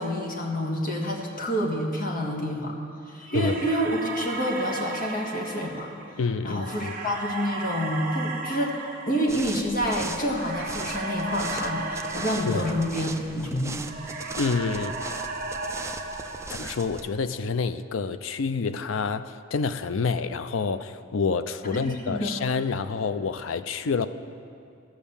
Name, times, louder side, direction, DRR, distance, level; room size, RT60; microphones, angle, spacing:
voice 1, 0.0-2.7 3.1-5.9 6.4-8.7 9.1-13.8 21.7-22.4, equal, 45° left, 0 dB, 1.6 m, -28 dB
sound 1, 3.3-13.5 13.8-17.2, right 3 dB, 45° right, 1.0 m, -36 dB
voice 2, 6.2-6.9 12.5-12.7 14.4-14.9 16.5-24.1, left 4 dB, 90° left, 12 dB, 0.5 m, -28 dB
sound 2, 9.3-17.1, right 3 dB, 15° right, 0.4 m, -39 dB
15.0 x 6.3 x 7.0 m, 2.4 s
head